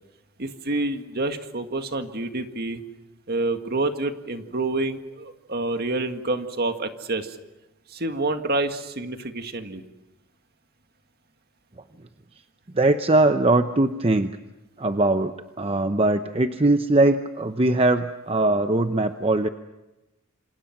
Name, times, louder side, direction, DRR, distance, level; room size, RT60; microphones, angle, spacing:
voice 1, 0.4-2.8 3.3-7.4 7.9-9.8, right 2 dB, 50° right, 7 dB, 1.9 m, -28 dB
voice 2, 12.7-14.3 14.8-19.5, right 2 dB, 25° right, 8 dB, 0.8 m, -21 dB
28.0 x 27.5 x 6.0 m, 1.0 s
head